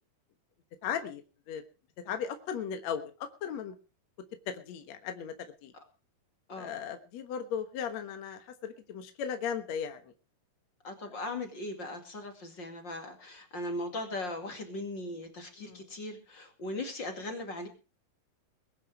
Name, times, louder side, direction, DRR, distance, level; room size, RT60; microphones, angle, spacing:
voice 1, 0.8-1.2 1.5-1.6 2.1-3.7 4.5-5.7 6.6-10.0 15.6-15.8, left 7 dB, 60° left, 7 dB, 2.3 m, -36 dB
voice 2, 10.8-17.7, left 2 dB, 35° left, 6 dB, 2.7 m, -38 dB
22.0 x 9.5 x 4.9 m, 0.34 s
omnidirectional pair, 4.0 m